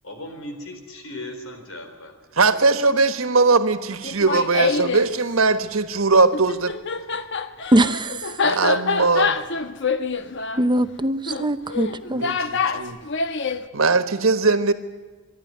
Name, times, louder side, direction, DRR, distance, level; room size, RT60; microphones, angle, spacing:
voice 1, 0.0-2.1, left 1 dB, 80° left, 5 dB, 4.1 m, -37 dB
voice 2, 2.4-6.7 8.4-9.4 12.1-13.0 13.7-14.7, right 3 dB, 90° right, 10 dB, 1.4 m, -20 dB
Laughter, 4.0-5.1 6.3-13.6, left 4 dB, 60° left, 1.1 m, -25 dB
voice 3, 7.7-8.3 10.6-12.2, right 1 dB, 20° right, 11 dB, 0.7 m, -21 dB
26.0 x 11.5 x 9.5 m, 1.3 s
head